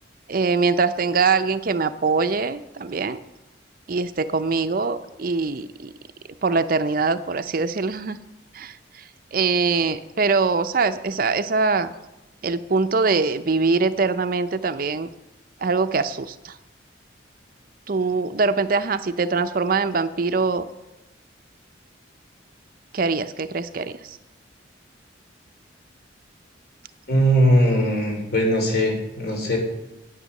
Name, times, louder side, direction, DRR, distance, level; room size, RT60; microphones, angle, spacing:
voice 1, 0.3-3.2 3.9-5.9 6.4-8.2 8.5-11.9 12.4-15.1 15.6-16.6 17.9-20.7 22.9-24.2, right 4 dB, 50° right, 11 dB, 0.5 m, -23 dB
voice 2, 27.1-29.6, equal, 55° left, 1 dB, 3.3 m, -20 dB
11.0 x 9.3 x 6.5 m, 0.94 s
head